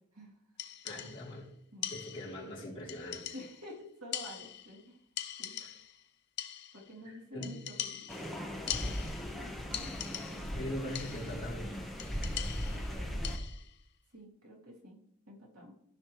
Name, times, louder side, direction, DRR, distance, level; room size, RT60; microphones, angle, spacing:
sound 1, 0.6-1.4 1.8-2.5 2.9-3.7 4.1-4.9 5.2-6.0 6.4-6.9 7.4-9.4 9.7-10.6 10.9-11.4 12.0-13.8, left 10 dB, 50° left, 0.6 m, -42 dB
voice 1, 0.8-1.5 1.9-3.3 5.6-5.7 7.0-7.5 10.5-11.7, left 1 dB, 25° left, -7 dB, 3.4 m, -41 dB
voice 2, 3.3-5.0 5.4-5.6 6.7-8.9 9.3-10.0 10.3-10.6 12.7-13.4 14.1-15.7, equal, 85° right, -3 dB, 2.7 m, -50 dB
sound 2, 8.1-13.4, equal, ahead, 1.0 m, -38 dB
15.0 x 5.4 x 3.1 m, 0.71 s
head